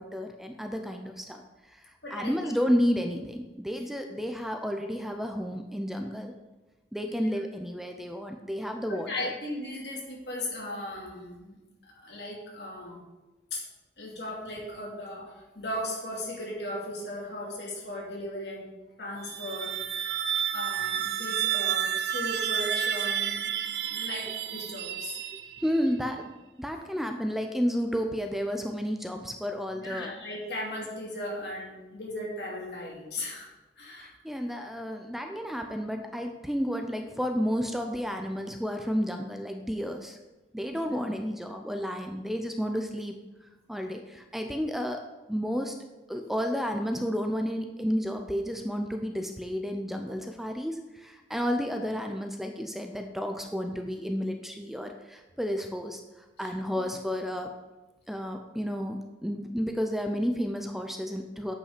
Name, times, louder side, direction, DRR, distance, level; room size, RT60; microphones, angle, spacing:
voice 1, 0.0-1.4 1.7-1.8 2.1-6.3 6.9-9.3 25.3-26.3 26.6-30.1 34.0-40.2 40.5-43.2 43.7-45.0 45.3-45.7 46.1-56.0 56.4-57.5 58.1-61.5, equal, ahead, 4 dB, 0.5 m, -31 dB
voice 2, 2.0-2.6 7.0-7.3 8.9-11.6 11.9-13.0 13.5-13.6 14.0-18.7 19.0-20.2 20.5-21.8 22.1-23.5 23.8-25.1 29.7-33.5 33.8-34.1 40.7-41.0, left 1 dB, 70° left, -3 dB, 2.6 m, -37 dB
sound 1, 19.2-25.8, right 9 dB, 65° right, 0.5 m, -30 dB
8.6 x 5.4 x 5.0 m, 1.1 s
head